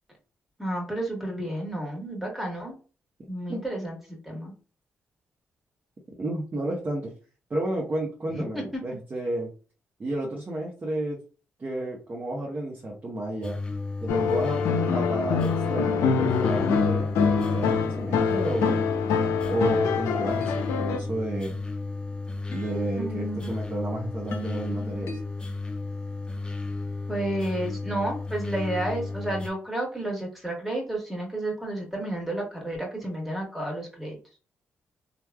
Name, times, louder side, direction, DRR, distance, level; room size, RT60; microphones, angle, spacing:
voice 1, 0.6-2.7 3.3-4.5 8.3-8.8 23.0-23.5 27.1-34.2, right 1 dB, 5° right, -1 dB, 1.5 m, -31 dB
voice 2, 6.2-7.1 7.5-9.5 10.0-11.2 11.6-13.6 14.0-14.6 14.9-18.8 19.5-21.6 22.5-25.1, right 1 dB, 35° right, -2 dB, 0.9 m, -31 dB
sound 1, 13.4-29.5, left 3 dB, 20° left, 0.6 m, -33 dB
sound 2, 14.1-21.0, left 5 dB, 90° left, 0.5 m, -25 dB
sound 3, 20.1-25.2, left 3 dB, 60° left, 0.8 m, -43 dB
3.2 x 2.4 x 2.3 m, 0.37 s
cardioid pair, 65°, 5 cm